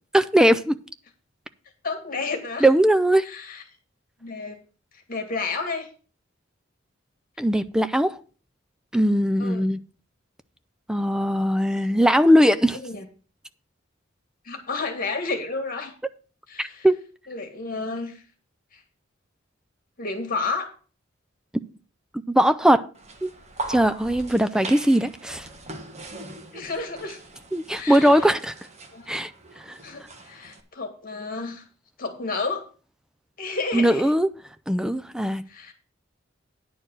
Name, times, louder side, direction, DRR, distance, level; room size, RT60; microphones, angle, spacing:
voice 1, 0.1-0.8 2.6-3.2 7.4-8.2 8.9-9.8 10.9-12.8 16.6-17.0 22.3-22.8 23.2-23.3 23.7-25.5 27.5-28.5 29.1-29.3 29.6-29.7 33.7-34.3 34.7-35.4, equal, 5° right, 0.4 m, -20 dB
voice 2, 1.8-2.7 3.2-3.6 4.2-4.6 5.1-5.9 9.4-9.7 12.8-13.1 14.5-15.9 16.5-16.9 17.3-18.2 18.7-18.8 20.0-20.7 26.5-27.2 27.7-28.3 28.9-29.1 29.8-31.6 32.0-32.6 33.4-34.1 35.5-35.7, left 3 dB, 45° left, 2.2 m, -31 dB
sound 1, 23.0-30.6, right 2 dB, 35° right, 1.4 m, -40 dB
10.0 x 4.6 x 7.7 m
head